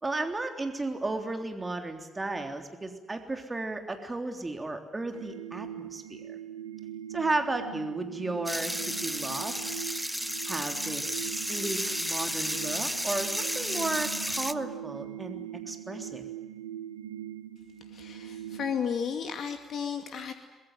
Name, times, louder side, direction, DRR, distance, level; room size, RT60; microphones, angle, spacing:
voice 1, 0.0-6.4 7.1-9.6 10.5-16.3, right 2 dB, 25° right, 5 dB, 3.4 m, -34 dB
sound 1, 5.1-18.8, right 11 dB, 90° right, 1.3 m, -41 dB
sound 2, 8.5-14.5, equal, ahead, 1.3 m, -32 dB
voice 2, 17.9-20.3, left 7 dB, 60° left, 7 dB, 2.3 m, -33 dB
24.0 x 21.5 x 9.4 m, 1.2 s
hypercardioid pair, 45°, 0 cm